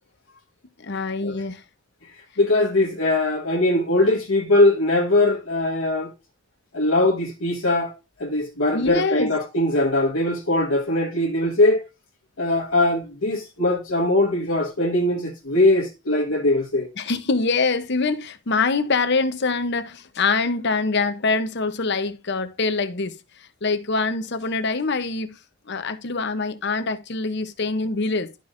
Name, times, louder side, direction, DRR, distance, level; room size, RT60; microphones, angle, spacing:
voice 1, 0.8-1.6 8.7-9.3 17.0-25.4 25.7-28.3, left 4 dB, 50° left, 0.8 m, -24 dB
voice 2, 2.4-6.1 6.7-7.9 8.2-11.8 12.4-16.9, left 2 dB, 70° left, 1.4 m, -21 dB
12.5 x 5.2 x 2.6 m
head